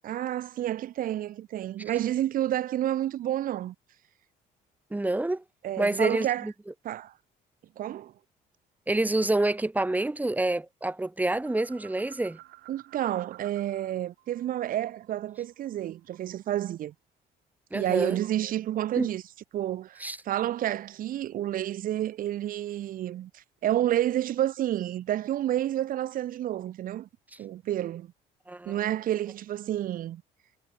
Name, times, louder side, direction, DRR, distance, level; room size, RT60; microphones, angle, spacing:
voice 1, 0.0-3.7 5.6-6.5 6.8-7.1 7.8-8.1 12.7-16.9 17.7-19.2 19.5-27.1 27.4-28.1 28.6-30.2, right 12 dB, 60° right, 1.0 m, -30 dB
voice 2, 4.9-5.4 5.8-6.5 8.9-12.4 17.7-18.2 19.0-19.1 20.0-20.2 28.5-28.7, right 2 dB, 10° right, 1.0 m, -27 dB
sound 1, 11.3-13.9 14.2-16.5, right 18 dB, 80° right, 2.8 m, -53 dB
cardioid pair, 95°, 16 cm